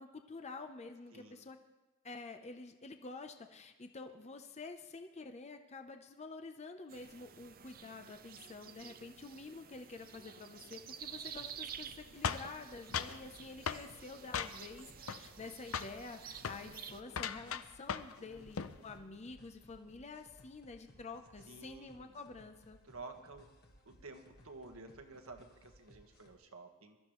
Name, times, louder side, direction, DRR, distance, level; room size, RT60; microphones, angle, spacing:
voice 1, 0.0-1.6 2.0-22.8, left 3 dB, 30° left, 6 dB, 0.7 m, -49 dB
voice 2, 1.1-1.5 13.2-13.5 18.2-19.2 21.4-22.2 22.8-23.5 23.8-27.0, right 3 dB, 75° right, 4 dB, 1.5 m, -53 dB
sound 1, 6.9-17.0, right 8 dB, 45° right, 0.6 m, -51 dB
sound 2, 11.0-26.4, equal, 50° left, 1.5 m, -63 dB
sound 3, 12.2-13.2 13.7-13.9 14.3-14.8 15.1-15.5 15.7-16.0 16.4-16.6 17.1-18.2 18.4-18.8, left 7 dB, 70° left, 0.5 m, -38 dB
22.5 x 13.0 x 3.1 m, 1.1 s
head